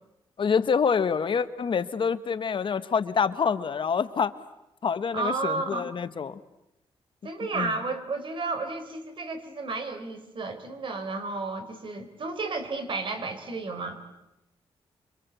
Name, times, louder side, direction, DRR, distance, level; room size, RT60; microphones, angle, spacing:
voice 1, 0.4-4.3 4.8-6.4 7.5-7.7, left 6 dB, 55° left, 12 dB, 1.3 m, -26 dB
voice 2, 5.1-5.9 7.2-14.0, right 3 dB, 55° right, 8 dB, 4.3 m, -32 dB
28.0 x 24.5 x 8.3 m, 0.91 s
cardioid pair, 100°, 10 cm